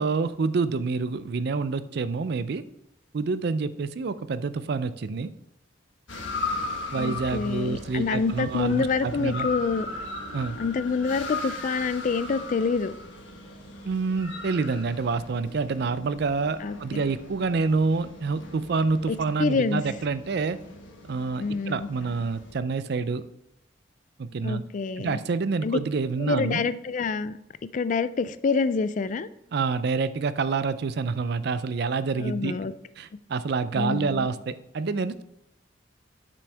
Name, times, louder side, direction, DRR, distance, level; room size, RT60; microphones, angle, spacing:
voice 1, 0.0-2.6 3.1-5.3 6.9-9.5 10.3-10.6 13.8-20.6 21.1-23.2 24.2-24.6 25.0-26.6 29.5-32.6 33.0-35.2, right 4 dB, 60° right, 14 dB, 0.4 m, -27 dB
sound 1, 6.1-22.6, left 3 dB, 90° left, 1.4 m, -38 dB
voice 2, 7.0-9.9 10.6-12.9 16.6-17.0 19.1-19.8 21.4-21.9 24.4-25.2 25.6-25.8 26.2-27.4 27.7-29.3 32.2-32.7 33.7-34.3, left 4 dB, 40° left, 15 dB, 0.3 m, -27 dB
7.9 x 6.1 x 3.4 m, 0.83 s
head